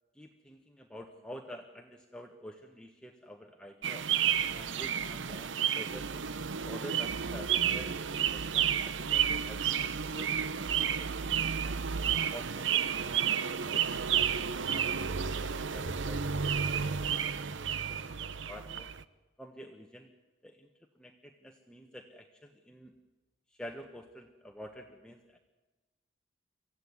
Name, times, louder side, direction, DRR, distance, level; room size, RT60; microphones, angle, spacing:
voice 1, 0.1-4.1 4.5-6.2 6.6-10.3 11.0-11.3 11.6-11.9 12.3-17.0 17.4-18.9 19.4-20.1 20.4-20.7 20.9-23.0 23.5-25.4, equal, 5° left, 3 dB, 1.2 m, -49 dB
sound 1, 3.8-19.0, right 8 dB, 75° right, 0.8 m, -31 dB
24.5 x 15.0 x 9.6 m, 1.2 s
head